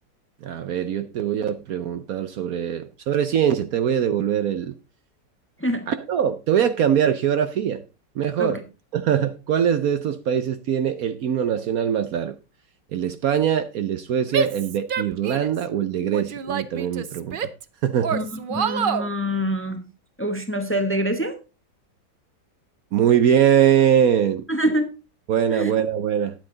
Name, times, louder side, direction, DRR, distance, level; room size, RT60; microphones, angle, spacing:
voice 1, 0.4-4.7 5.9-7.8 8.2-8.6 8.9-12.3 12.9-17.4 17.8-18.2 22.9-24.4 25.3-26.3, right 9 dB, 65° right, 11 dB, 1.1 m, -22 dB
Female speech woman speaking / Yell, 14.3-15.6 16.1-17.6 18.0-19.1, right 6 dB, 90° right, 0.4 m, -27 dB
voice 2, 18.5-19.8 20.2-21.4 24.5-24.9 25.5-25.7, equal, 10° left, 7 dB, 1.0 m, -25 dB
10.0 x 8.7 x 3.9 m, 0.30 s
omnidirectional pair, 1.9 m